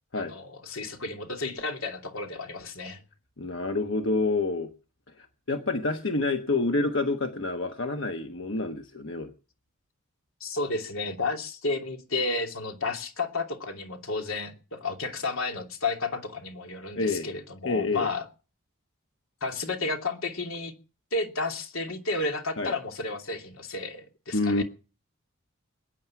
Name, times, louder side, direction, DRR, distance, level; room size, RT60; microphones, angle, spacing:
voice 1, 0.1-3.0 10.4-18.3 19.4-20.7 21.1-24.6, left 3 dB, 90° left, 2.8 m, -32 dB
voice 2, 3.4-4.7 5.2-9.3 16.9-17.3 17.6-18.1 22.6-22.7 24.3-24.6, left 3 dB, 65° left, 1.2 m, -28 dB
22.0 x 9.6 x 5.9 m
head